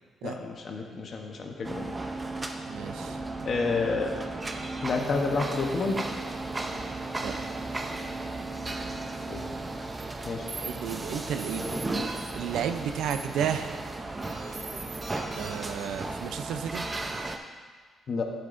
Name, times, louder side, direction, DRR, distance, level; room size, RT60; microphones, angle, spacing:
voice 1, 0.2-1.9 3.4-4.1 4.8-6.0 9.3-9.4 10.2-10.5 18.1-18.2, left 4 dB, 50° left, 2 dB, 1.0 m, -29 dB
sound 1, 1.6-17.4, right 2 dB, 25° right, 0.7 m, -35 dB
voice 2, 2.7-3.2 7.2-7.6 10.6-11.7 12.3-13.9 15.4-16.8, right 8 dB, 85° right, 8 dB, 0.5 m, -33 dB
sound 2, 9.9-10.0 10.5-10.9 11.4-11.8 12.2-12.8 13.1-13.7 14.2-15.8, right 2 dB, 40° right, 1.7 m, -42 dB
10.5 x 7.8 x 2.6 m, 1.5 s
cardioid pair, 90°, 0 cm